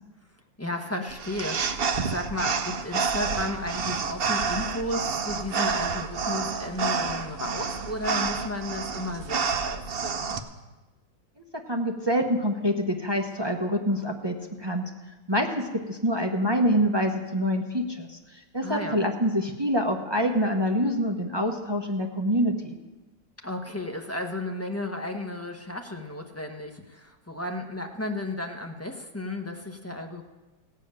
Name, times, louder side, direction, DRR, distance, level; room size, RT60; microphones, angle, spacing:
voice 1, 0.6-10.4 18.6-19.0 23.4-30.2, left 1 dB, 15° left, 2 dB, 0.6 m, -33 dB
sound 1, 1.1-10.4, right 5 dB, 80° right, 0.5 m, -29 dB
voice 2, 11.7-14.8 15.3-22.8, equal, 30° right, 2 dB, 0.4 m, -26 dB
16.5 x 5.6 x 8.8 m, 1.2 s
omnidirectional pair, 2.0 m